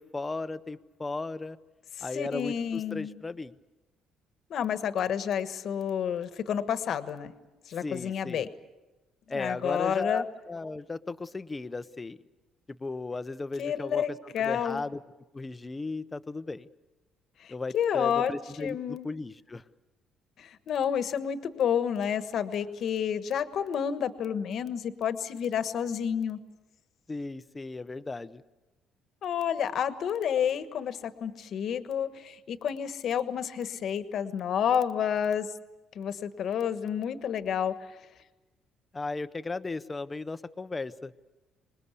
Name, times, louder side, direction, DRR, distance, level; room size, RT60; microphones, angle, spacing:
voice 1, 0.0-1.6 2.0-3.5 7.8-8.5 9.3-12.2 12.7-15.0 15.3-16.7 17.5-19.6 27.1-28.4 38.9-41.1, left 3 dB, 15° left, 12 dB, 0.7 m, -36 dB
voice 2, 2.1-3.2 4.5-7.3 7.7-8.5 9.3-10.2 13.6-14.8 17.4-18.3 18.6-19.1 20.4-26.4 29.2-35.5 35.9-37.7, left 8 dB, 50° left, 11 dB, 1.3 m, -30 dB
26.5 x 20.5 x 8.3 m, 1.1 s
cardioid pair, 145°, 0 cm